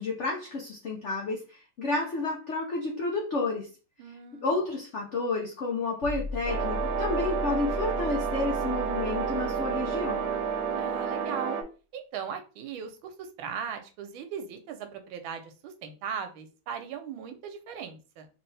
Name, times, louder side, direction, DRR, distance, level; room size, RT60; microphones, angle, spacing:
voice 1, 0.0-3.7 4.4-10.3, left 3 dB, 75° left, 0 dB, 0.6 m, -31 dB
voice 2, 4.0-4.6 10.8-11.6 11.9-18.3, right 7 dB, 90° right, 7 dB, 1.5 m, -38 dB
sound 1, 6.0-11.0, left 2 dB, 35° right, 1.1 m, -37 dB
sound 2, 6.5-11.6, right 7 dB, 70° right, 1.2 m, -30 dB
3.4 x 3.2 x 3.2 m, 0.35 s
omnidirectional pair, 2.2 m